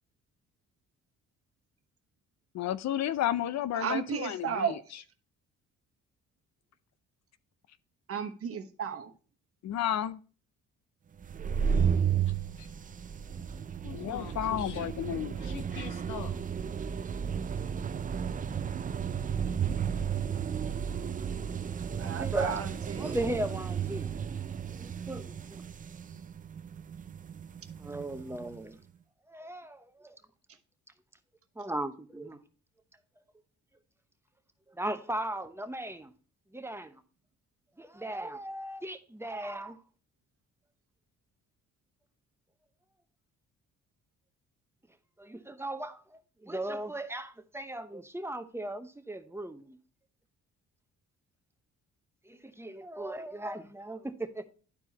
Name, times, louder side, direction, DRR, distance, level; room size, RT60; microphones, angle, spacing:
voice 1, 2.5-4.7 9.6-10.2 13.9-15.4, left 11 dB, 60° left, 0.5 m, -32 dB
voice 2, 3.7-4.8 8.1-9.1 22.0-23.2, right 7 dB, 50° right, 1.1 m, -34 dB
sound 1, 11.2-28.6, right 7 dB, 25° right, 0.4 m, -33 dB
voice 3, 13.8-14.9 15.3-16.4, left 8 dB, 85° left, 1.0 m, -44 dB
voice 4, 22.2-22.6 23.0-24.1 24.7-25.6 27.8-28.8 29.3-30.2 31.6-32.4 34.7-36.1 36.5-37.0 37.8-39.8 45.2-49.8 52.3-54.5, right 1 dB, 10° right, 0.8 m, -37 dB
11.5 x 4.6 x 2.9 m
cardioid pair, 90°, 30 cm